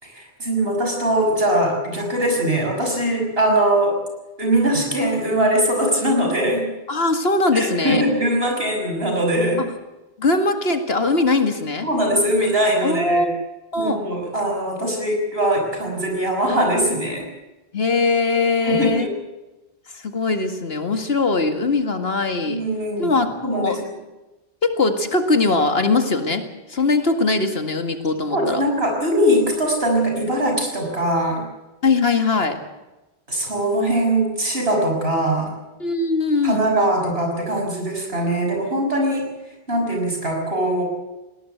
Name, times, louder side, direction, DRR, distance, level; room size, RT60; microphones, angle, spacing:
voice 1, 0.0-4.0 4.4-6.6 7.5-9.7 11.8-13.3 13.8-17.3 18.6-19.1 22.5-23.1 23.4-23.8 28.3-31.5 33.3-35.5 36.4-39.3 39.7-40.8, right 1 dB, 70° right, 2 dB, 6.3 m, -21 dB
voice 2, 6.9-8.0 9.6-9.7 10.2-11.9 12.8-13.4 13.7-14.0 17.7-19.1 19.9-22.6 23.0-23.8 24.6-28.6 31.8-32.6 35.8-36.6, left 3 dB, 70° left, 6 dB, 2.3 m, -21 dB
20.5 x 17.5 x 8.0 m, 1.0 s
omnidirectional pair, 1.1 m